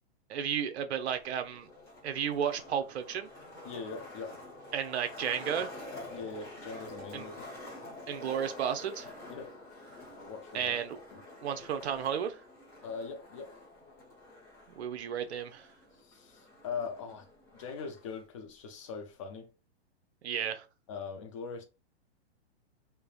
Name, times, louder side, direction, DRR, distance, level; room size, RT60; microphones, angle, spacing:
voice 1, 0.3-1.7 2.0-3.3 4.7-5.7 7.1-7.3 8.1-9.1 10.5-11.0 11.4-12.4 14.8-15.7 20.2-20.6, right 8 dB, 75° right, 0.6 m, -33 dB
Skateboard, 1.0-18.0, left 2 dB, 10° left, 0.8 m, -48 dB
voice 2, 3.6-4.4 6.1-7.5 9.3-9.6 10.2-10.8 11.1-11.2 12.8-13.6 16.0-17.3 17.5-19.5 20.9-21.6, left 5 dB, 30° left, 0.4 m, -41 dB
3.2 x 2.0 x 2.4 m
hypercardioid pair, 155°, 33 cm